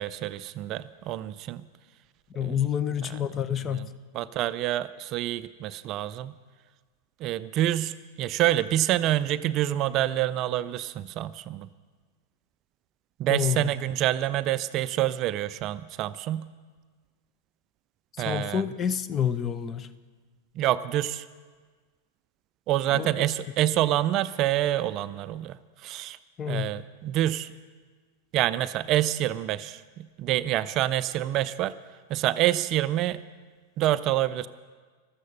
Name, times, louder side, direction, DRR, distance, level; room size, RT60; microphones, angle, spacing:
voice 1, 0.0-1.6 2.4-2.6 3.1-3.2 3.7-3.9 4.1-6.3 7.2-11.7 13.2-16.5 18.2-18.6 20.6-21.3 22.7-26.2 26.5-27.5 28.3-31.7 32.1-33.2 33.8-34.5, right 13 dB, 35° right, 15 dB, 0.4 m, -27 dB
voice 2, 2.3-3.9 13.3-13.7 18.2-19.9 22.9-23.3 26.4-26.7, left 9 dB, 25° left, 15 dB, 0.6 m, -28 dB
15.5 x 12.5 x 5.8 m, 1.5 s
figure-of-eight pair, 90°, 0 cm